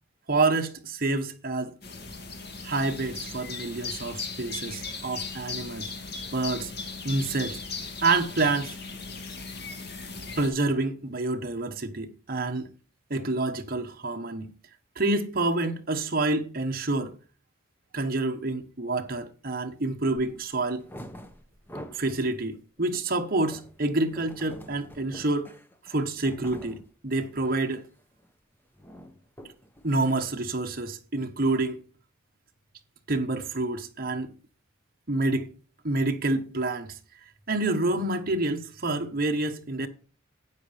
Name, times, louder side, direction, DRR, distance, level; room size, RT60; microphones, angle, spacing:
voice 1, 0.3-1.7 2.6-5.9 6.3-6.7 7.0-7.6 8.0-8.8 10.4-12.7 13.1-14.5 15.0-17.1 17.9-20.8 21.9-25.5 25.9-27.9 29.8-31.8 33.1-34.3 35.1-35.5 35.8-37.0 37.5-39.9, right 2 dB, 45° right, 1.2 m, -28 dB
sound 1, 1.8-10.5, left 4 dB, 50° left, 2.2 m, -37 dB
sound 2, 20.1-20.3 20.7-22.2 22.6-26.9 27.3-27.7 28.0-28.3 28.5-30.2, equal, 10° left, 0.9 m, -46 dB
12.5 x 9.2 x 3.4 m
head